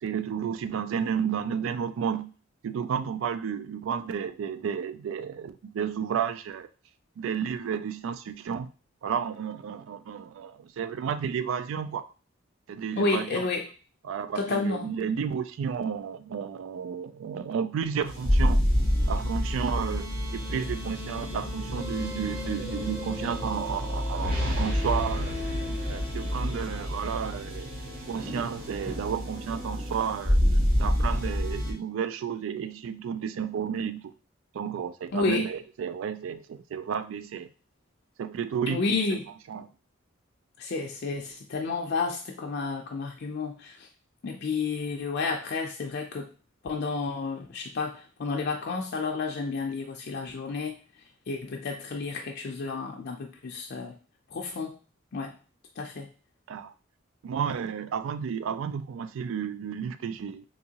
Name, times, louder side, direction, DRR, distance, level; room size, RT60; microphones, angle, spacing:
voice 1, 0.0-2.3 2.6-6.7 7.2-8.7 9.0-12.1 12.7-13.5 14.0-18.6 19.1-25.4 25.9-27.7 28.1-30.4 30.8-34.1 34.5-37.5 38.2-38.8 39.5-39.7 56.5-56.7 57.2-60.4, right 7 dB, 75° right, 12 dB, 0.3 m, -32 dB
voice 2, 13.0-13.6 14.4-14.9 35.1-35.4 38.7-39.2 40.6-43.8 44.2-46.3 46.6-50.8 51.3-53.9 54.3-54.7 55.1-55.3 55.8-56.1, left 4 dB, 55° left, 1 dB, 0.4 m, -31 dB
sound 1, 18.0-31.7, equal, 50° right, 1.1 m, -28 dB
3.6 x 2.7 x 2.8 m, 0.36 s
head